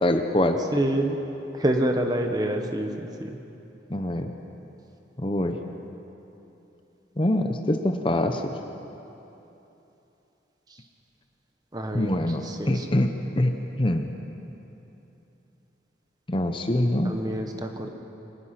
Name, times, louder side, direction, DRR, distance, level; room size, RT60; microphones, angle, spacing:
voice 1, 0.0-0.6 3.9-4.3 5.2-5.6 7.2-8.5 11.9-14.1 16.3-17.2, left 1 dB, 30° left, 6 dB, 0.8 m, -24 dB
voice 2, 0.7-1.2 1.6-3.3 11.7-12.1 12.4-12.9 17.0-17.9, right 1 dB, 20° right, 4 dB, 1.3 m, -27 dB
24.5 x 19.0 x 6.0 m, 3.0 s
head